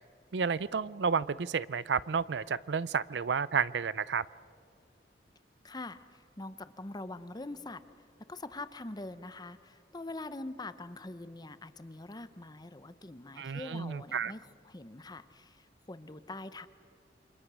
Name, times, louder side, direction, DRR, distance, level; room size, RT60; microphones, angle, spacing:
voice 1, 0.3-4.2 13.4-14.3, right 6 dB, 75° right, 19 dB, 0.5 m, -31 dB
voice 2, 5.6-16.7, left 2 dB, 25° left, 12 dB, 0.8 m, -44 dB
28.0 x 26.0 x 6.3 m, 2.3 s
head